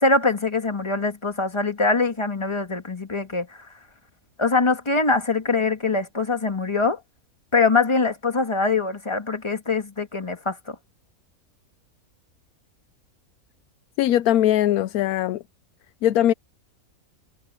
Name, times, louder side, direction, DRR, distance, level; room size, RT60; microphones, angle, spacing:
voice 1, 0.0-3.7 4.4-7.0 7.5-10.8, left 3 dB, 20° left, 1.6 m, -23 dB
voice 2, 14.0-15.4 16.0-16.3, left 12 dB, 85° left, 1.1 m, -20 dB
omnidirectional pair, 1.5 m